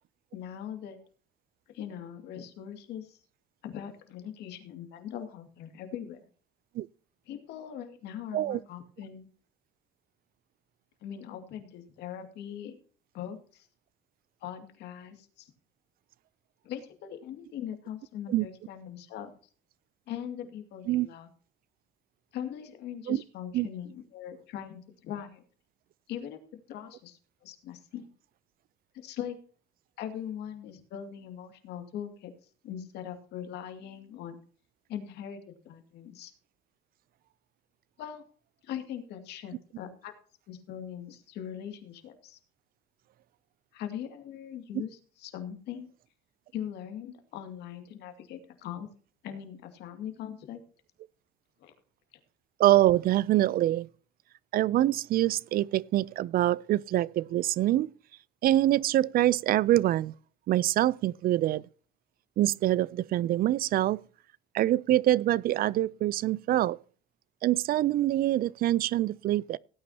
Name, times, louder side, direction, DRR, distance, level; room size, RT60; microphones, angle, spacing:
voice 1, 0.3-1.0 1.7-3.2 3.6-6.2 7.3-9.3 11.0-12.8 13.1-13.7 14.4-15.5 16.6-19.4 20.1-21.3 22.3-25.4 26.1-26.4 26.7-28.1 28.9-29.4 30.0-32.3 32.6-34.4 34.9-36.3 38.0-38.2 38.6-40.1 40.5-42.4 43.7-45.9 46.5-48.9 49.2-50.6 51.6-51.7, left 9 dB, 80° left, 2.4 m, -41 dB
voice 2, 52.6-53.9 54.5-57.9 58.4-60.1 60.5-61.6 62.4-64.0 64.5-66.8 67.4-69.6, right 14 dB, 60° right, 0.5 m, -25 dB
17.5 x 9.6 x 2.8 m
cardioid pair, 110°, 17 cm